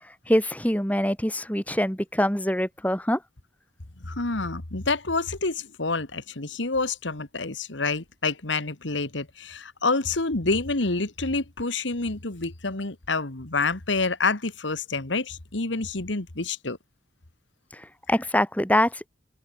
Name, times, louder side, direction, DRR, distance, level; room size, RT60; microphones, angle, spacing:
voice 1, 0.3-3.2 17.7-19.1, left 1 dB, 10° left, 6.2 m, -24 dB
voice 2, 4.0-16.8, left 3 dB, 85° left, 2.0 m, -28 dB
open air
head